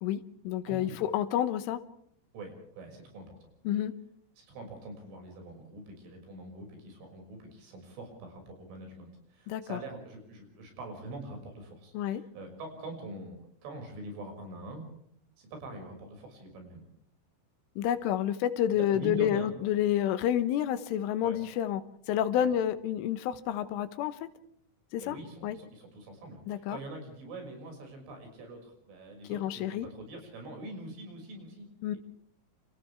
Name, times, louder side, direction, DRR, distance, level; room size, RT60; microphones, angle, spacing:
voice 1, 0.0-1.8 3.7-3.9 9.5-9.8 12.0-12.2 17.8-21.8 22.1-24.3 24.9-25.2 25.4-25.6 26.5-26.8 29.3-29.9 31.8-32.0, left 10 dB, 80° left, 12 dB, 3.5 m, -29 dB
voice 2, 0.7-1.0 2.3-3.4 4.4-14.9 15.4-16.9 18.7-19.5 21.2-21.4 22.4-22.5 25.0-31.7 31.9-32.0, right 2 dB, 70° right, 3 dB, 8.6 m, -44 dB
29.0 x 28.0 x 3.5 m, 0.70 s
omnidirectional pair, 5.8 m